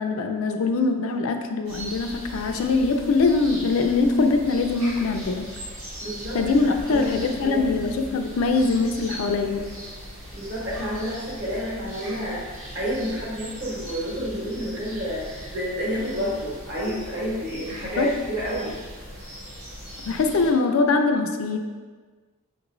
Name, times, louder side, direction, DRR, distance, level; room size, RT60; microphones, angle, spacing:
voice 1, 0.0-5.5 6.3-9.7 18.0-18.2 20.1-21.6, left 3 dB, 70° left, 5 dB, 0.4 m, -22 dB
sound 1, 1.6-20.5, equal, 80° right, 1.4 m, -39 dB
voice 2, 6.0-6.4 6.6-7.2 7.4-7.7 10.3-18.8, equal, 55° right, -7 dB, 1.4 m, -30 dB
5.9 x 3.0 x 2.6 m, 1.4 s
head